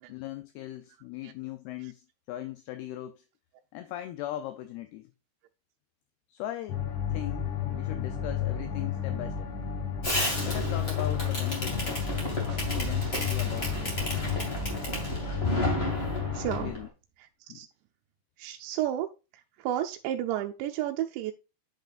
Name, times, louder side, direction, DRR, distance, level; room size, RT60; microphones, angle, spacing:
voice 1, 0.1-3.2 3.7-5.1 6.3-9.5 10.4-12.1 12.6-14.6 16.6-16.9 17.5-17.6, left 13 dB, 80° left, 2.3 m, -40 dB
sound 1, 6.7-16.7, left 8 dB, 60° left, 2.4 m, -32 dB
Fireworks, 10.0-16.8, left 1 dB, 25° left, 1.3 m, -32 dB
Explosion, 12.5-16.6, right 5 dB, 60° right, 2.4 m, -43 dB
voice 2, 16.3-16.7 17.2-17.7 18.4-19.1 19.6-21.3, right 12 dB, 80° right, 2.8 m, -32 dB
10.0 x 5.2 x 2.5 m
omnidirectional pair, 5.2 m